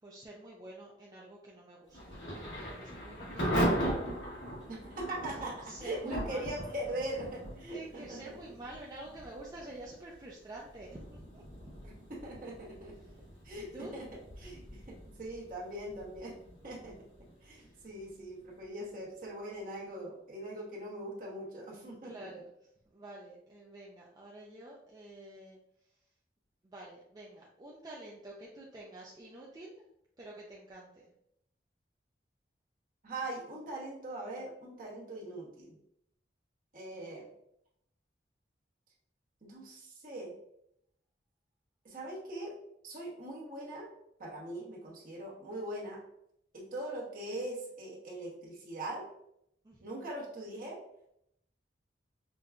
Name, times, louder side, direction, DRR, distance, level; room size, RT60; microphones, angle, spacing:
voice 1, 0.0-3.9 5.2-6.4 7.7-11.7 13.0-13.2 13.5-13.9 17.6-17.8 22.0-22.5 22.9-25.6 26.6-29.8 30.2-31.1 49.6-49.8, right 2 dB, 20° right, -3 dB, 0.4 m, -49 dB
Thunder / Rain, 1.9-18.6, equal, 85° left, 1.3 m, -39 dB
voice 2, 4.7-5.5 5.8-8.2 12.1-12.9 13.4-14.1 14.4-16.3 16.6-16.9 17.4-22.1 33.0-35.7 36.7-37.2 39.4-40.3 41.8-42.5 42.8-43.9 44.2-46.0 46.5-49.0 49.8-50.8, right 1 dB, 50° right, -3 dB, 1.0 m, -41 dB
5.2 x 2.2 x 2.4 m, 0.76 s
head